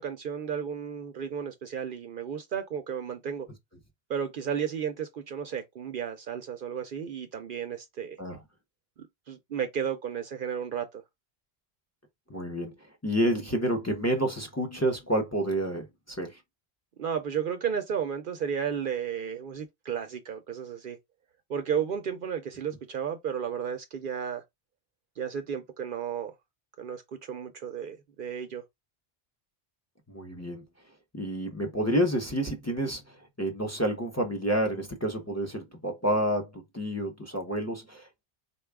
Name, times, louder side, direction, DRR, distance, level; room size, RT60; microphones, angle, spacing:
voice 1, 0.0-3.5 4.1-8.2 9.0-11.0 17.0-21.0 21.5-24.4 25.2-26.3 26.8-28.6, right 7 dB, 60° right, 0.7 m, -33 dB
voice 2, 12.3-12.7 13.0-16.4 30.1-30.6 31.1-38.2, right 1 dB, 15° left, 0.7 m, -29 dB
4.0 x 2.3 x 3.4 m
omnidirectional pair, 1.1 m